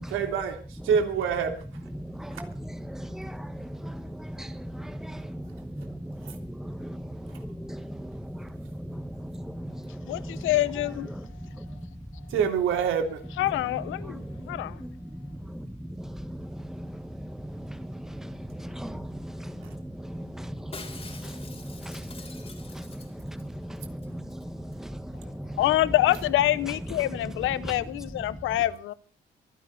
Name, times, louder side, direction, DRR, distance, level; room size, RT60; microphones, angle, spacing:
voice 1, 0.1-1.6 2.3-2.4 6.2-6.4 12.3-13.2, right 7 dB, 85° right, 3.4 m, -26 dB
voice 2, 1.8-12.4 13.5-25.9 26.5-28.6, equal, ahead, 1.7 m, -38 dB
voice 3, 10.1-11.1 13.4-14.8 25.6-28.9, left 15 dB, 85° left, 0.9 m, -26 dB
Shatter, 20.7-23.5 23.8-23.9 24.0-24.4 24.7-24.8, left 4 dB, 30° left, 3.8 m, -45 dB
24.0 x 11.0 x 4.2 m
cardioid pair, 90°, 20 cm